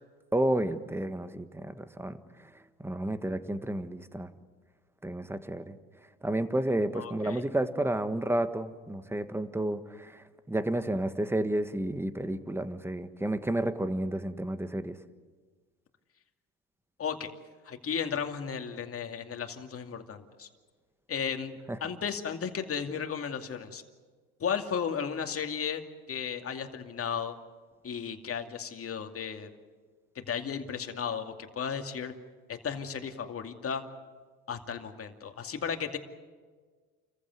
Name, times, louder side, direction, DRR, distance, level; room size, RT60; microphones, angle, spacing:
voice 1, 0.3-2.2 2.8-4.3 5.0-5.7 6.2-15.0 21.7-21.8, right 1 dB, 5° right, 11 dB, 1.6 m, -31 dB
voice 2, 6.9-7.4 17.0-17.3 17.6-20.5 21.1-21.5 21.8-23.8 24.4-25.8 26.1-27.4 27.8-29.5 30.2-32.1 32.5-33.8 34.5-36.0, left 7 dB, 35° left, 5 dB, 2.5 m, -34 dB
29.0 x 15.0 x 9.5 m, 1.5 s
hypercardioid pair, 75°, 38 cm